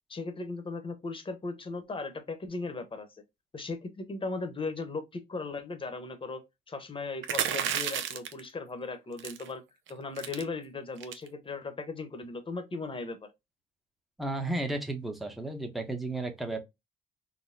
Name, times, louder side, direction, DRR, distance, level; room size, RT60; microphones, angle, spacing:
voice 1, 0.1-3.1 3.5-6.4 6.7-9.6 9.9-13.3, left 3 dB, 25° left, 0.9 m, -37 dB
sound 1, 7.2-8.4 9.2-9.5 9.9-10.0 10.2-10.4 11.0-11.3, right 9 dB, 75° right, 0.6 m, -31 dB
voice 2, 14.2-16.6, right 2 dB, ahead, 0.8 m, -33 dB
4.0 x 2.2 x 2.6 m
cardioid pair, 90°, 20 cm